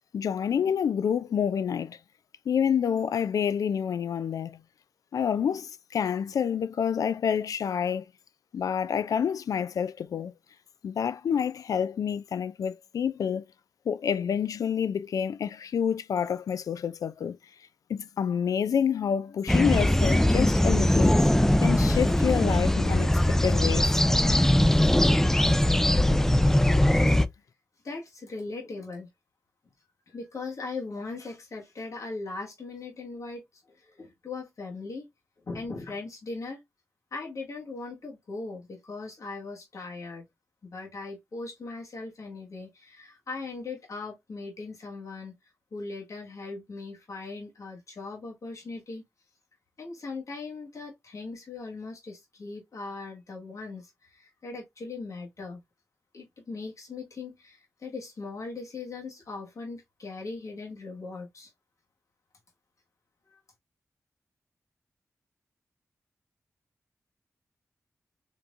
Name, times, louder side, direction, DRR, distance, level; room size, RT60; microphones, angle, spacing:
voice 1, 0.1-2.0 2.5-4.6 5.1-8.1 8.5-10.3 10.8-13.4 13.9-17.4 17.9-21.2 21.6-23.9, left 7 dB, 85° left, 0.3 m, -28 dB
sound 1, 19.5-27.3, left 1 dB, 5° left, 0.4 m, -21 dB
voice 2, 27.8-29.1 30.1-35.1 35.5-36.6 37.1-40.2 40.6-45.4 45.7-49.0 49.8-55.6 56.1-61.5 63.3-63.4, left 3 dB, 65° left, 1.6 m, -39 dB
4.5 x 3.6 x 2.5 m
cardioid pair, 55°, 6 cm